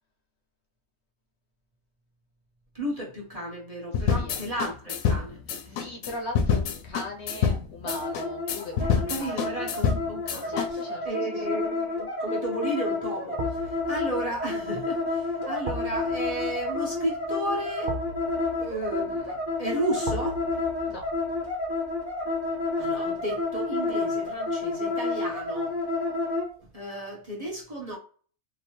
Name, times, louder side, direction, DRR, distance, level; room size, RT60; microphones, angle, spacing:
voice 1, 2.7-5.9 8.8-10.6 11.1-17.9 18.6-20.4 22.8-25.7 26.7-28.0, right 1 dB, 30° right, 0.9 m, -33 dB
sound 1, 3.9-10.7, left 7 dB, 85° left, 1.1 m, -27 dB
voice 2, 3.9-4.4 5.7-9.6 10.4-11.6 20.9-21.1, left 2 dB, 60° left, 0.9 m, -39 dB
sound 2, 7.8-26.5, left 3 dB, 10° right, 1.4 m, -30 dB
sound 3, 11.6-12.0 13.4-24.4 24.7-24.8, right 1 dB, 85° right, 1.1 m, -41 dB
3.3 x 3.0 x 3.0 m
omnidirectional pair, 1.4 m